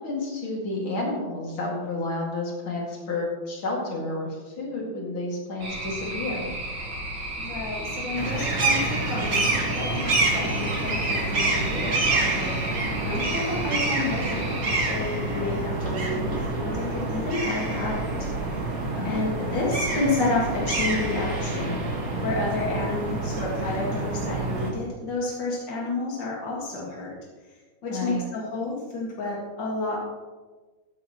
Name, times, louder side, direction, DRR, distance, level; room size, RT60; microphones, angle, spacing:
voice 1, 0.0-6.5 18.9-19.3 27.9-28.2, left 2 dB, 85° left, -2 dB, 3.1 m, -31 dB
sound 1, 5.6-14.9, right 1 dB, 65° right, 3.0 m, -34 dB
voice 2, 7.4-12.6 13.0-14.6 14.9-18.3 19.0-21.8 22.2-27.2 27.5-30.0, left 2 dB, 65° left, -3 dB, 2.6 m, -30 dB
sound 2, 8.2-24.7, right 2 dB, 45° right, 2.1 m, -27 dB
14.0 x 10.0 x 3.0 m, 1.3 s
omnidirectional pair, 2.2 m